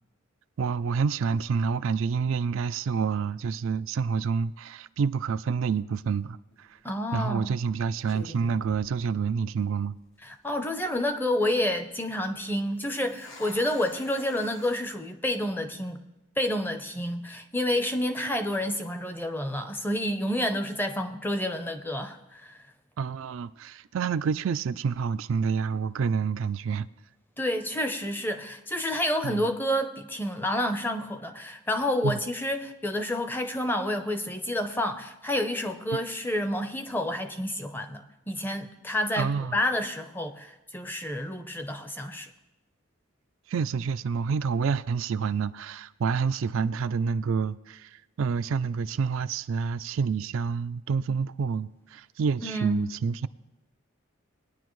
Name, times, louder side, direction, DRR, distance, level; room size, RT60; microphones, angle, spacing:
voice 1, 0.6-6.8 7.1-9.9 23.0-26.9 29.2-29.4 32.0-32.2 35.9-36.0 39.2-39.6 43.5-53.3, right 5 dB, 70° right, 0.3 m, -28 dB
sound 1, 6.5-6.8 7.6-7.7 8.1-9.6 9.9-10.0 10.6-11.0 12.8-14.8, left 1 dB, 65° left, 1.2 m, -47 dB
voice 2, 6.8-7.5 10.2-16.0 16.4-22.6 27.4-42.3 52.4-52.8, left 1 dB, 10° left, 0.6 m, -29 dB
20.5 x 9.9 x 3.1 m
head